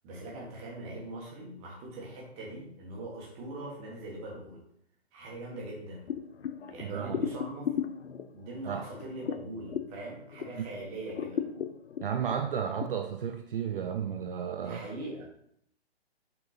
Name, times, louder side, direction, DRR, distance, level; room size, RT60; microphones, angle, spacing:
voice 1, 0.0-4.6 5.1-6.1 6.7-7.8 8.3-11.4 14.6-15.2, right 1 dB, 20° right, 1.5 m, -41 dB
sound 1, 6.1-10.7 11.0-12.9, left 8 dB, 90° left, 0.6 m, -36 dB
voice 2, 6.8-7.2 8.7-8.8 10.6-10.7 12.0-14.8, right 8 dB, 55° right, 0.5 m, -33 dB
5.3 x 4.5 x 4.2 m
hypercardioid pair, 155°, 33 cm